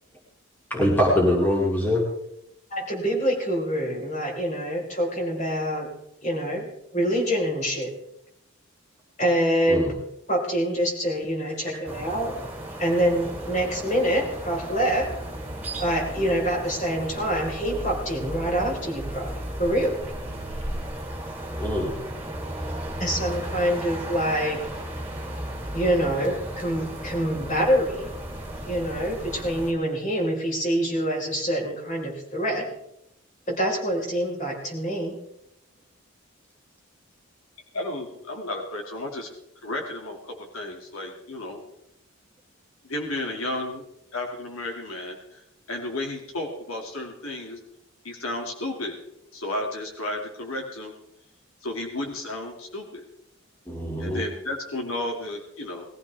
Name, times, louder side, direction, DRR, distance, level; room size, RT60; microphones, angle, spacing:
voice 1, 0.7-2.0 9.7-9.9 11.4-11.5 21.6-21.9 53.7-54.2, left 1 dB, 10° left, -3 dB, 2.6 m, -23 dB
voice 2, 2.7-5.9 6.2-6.7 6.9-7.9 9.2-9.8 10.3-12.3 12.8-15.1 15.8-20.0 23.0-24.6 25.7-28.1 28.6-32.7 33.5-35.2, equal, 35° left, -1 dB, 4.3 m, -25 dB
sound 1, 11.8-29.7, right 1 dB, 10° right, 2.8 m, -35 dB
voice 3, 37.7-39.3 39.6-41.6 42.8-43.8 44.1-47.6 48.0-48.9 49.3-50.9 51.6-53.0 54.0-55.8, left 1 dB, 75° left, 1 dB, 2.4 m, -33 dB
20.0 x 14.5 x 3.5 m, 0.80 s
head